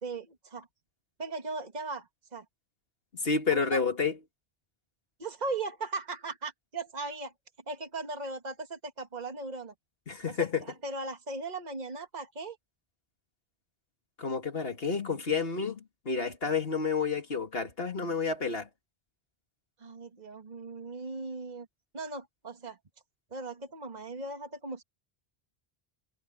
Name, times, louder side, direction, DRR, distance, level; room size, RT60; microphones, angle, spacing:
voice 1, 0.0-0.7 1.2-2.5 3.5-3.8 5.2-7.3 7.7-9.7 10.4-12.6 19.8-21.7 21.9-22.8 23.3-24.8, right 3 dB, 45° right, 1.8 m, -38 dB
voice 2, 3.2-4.1 10.1-10.6 14.2-18.7, left 5 dB, 70° left, 2.5 m, -30 dB
omnidirectional pair, 1.1 m